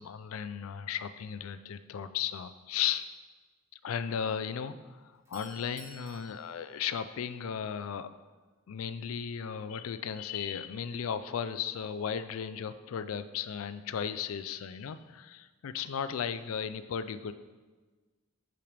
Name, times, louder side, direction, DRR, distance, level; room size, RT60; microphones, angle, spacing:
voice 1, 0.0-3.1 3.8-5.0 5.3-8.1 8.7-17.3, left 8 dB, 85° left, 12 dB, 0.4 m, -35 dB
Doorbell, 5.1-7.7, right 3 dB, 15° right, 0.8 m, -55 dB
8.5 x 5.2 x 3.3 m, 1.3 s
head